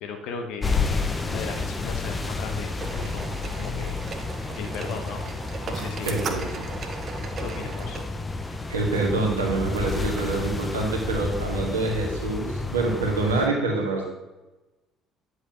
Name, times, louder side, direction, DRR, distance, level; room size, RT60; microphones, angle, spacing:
voice 1, 0.0-4.0 4.5-5.2 5.7-6.3 7.4-8.0, left 5 dB, 55° left, 5 dB, 1.0 m, -37 dB
sound 1, 0.6-13.5, left 3 dB, 20° left, 0.8 m, -30 dB
sound 2, 2.7-8.0, right 5 dB, 40° right, 0.9 m, -36 dB
voice 2, 6.0-6.5 8.7-14.0, right 3 dB, 75° right, -1 dB, 1.6 m, -26 dB
9.9 x 7.8 x 2.9 m, 1.1 s
figure-of-eight pair, 55°, 0 cm